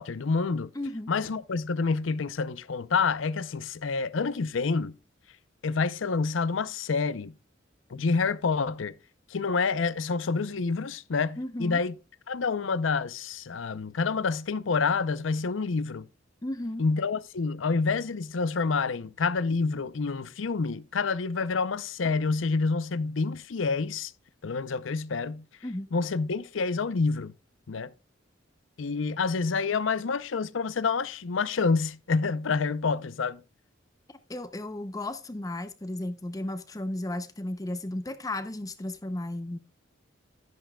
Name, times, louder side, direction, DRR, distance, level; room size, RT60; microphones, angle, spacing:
voice 1, 0.0-0.7 1.1-5.0 5.6-7.3 7.9-8.9 9.3-11.9 12.3-16.1 16.8-24.1 24.4-25.4 25.9-27.3 27.7-27.9 28.8-33.4, left 4 dB, 90° left, 0.6 m, -28 dB
voice 2, 0.7-1.1 11.4-11.8 16.4-16.8 25.6-25.9 34.1-39.6, left 1 dB, 20° left, 0.6 m, -34 dB
11.5 x 10.5 x 2.2 m
head